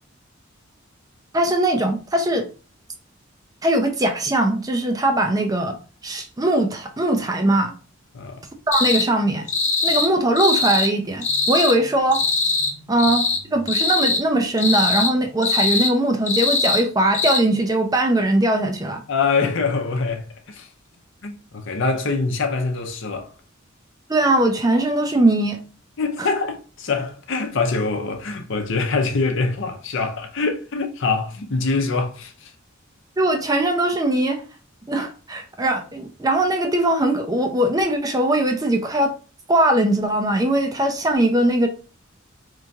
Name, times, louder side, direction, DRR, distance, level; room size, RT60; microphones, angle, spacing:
voice 1, 1.3-2.5 3.6-5.8 6.0-7.7 8.7-9.5 9.8-12.2 12.9-19.0 24.1-25.6 26.2-26.3 33.2-34.4 34.9-39.1 39.5-41.7, right 1 dB, 20° right, 0.5 m, -20 dB
sound 1, 8.7-9.1 9.5-10.1 10.4-10.9 11.2-11.7 12.1-12.7 13.0-13.4 13.7-14.2 14.6-15.1 15.4-15.9 16.3-16.8 17.1-17.4, left 3 dB, 35° left, 0.8 m, -21 dB
voice 2, 19.1-20.7 21.2-23.3 26.0-32.5, left 4 dB, 65° left, 0.7 m, -24 dB
3.0 x 2.7 x 3.4 m
head